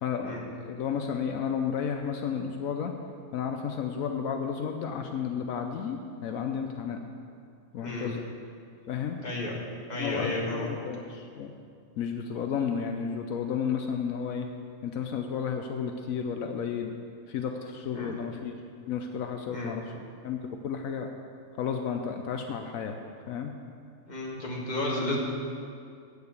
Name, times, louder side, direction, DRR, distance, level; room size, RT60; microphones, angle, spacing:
voice 1, 0.0-2.9 3.3-7.0 7.7-8.2 8.9-9.2 10.0-11.5 12.0-14.5 14.8-16.9 17.3-20.4 20.6-21.1 21.6-23.0 23.3-23.5, left 7 dB, 80° left, 4 dB, 1.1 m, -32 dB
voice 2, 7.8-8.1 9.2-9.5 9.9-10.7 17.9-18.2 19.5-19.8 24.1-25.2, left 2 dB, 30° left, -3 dB, 1.8 m, -32 dB
8.6 x 6.6 x 8.1 m, 2.3 s
omnidirectional pair, 1.4 m